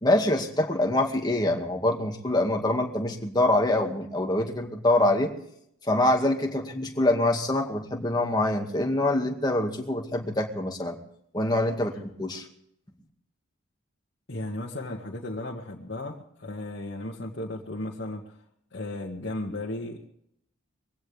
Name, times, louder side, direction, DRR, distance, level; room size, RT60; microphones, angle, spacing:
voice 1, 0.0-5.3 5.9-11.0 11.3-11.9 12.2-12.5, left 1 dB, 20° left, 2 dB, 2.1 m, -25 dB
voice 2, 14.3-18.4 18.7-20.1, left 1 dB, 55° left, -2 dB, 1.9 m, -35 dB
22.5 x 16.5 x 3.5 m, 0.72 s
head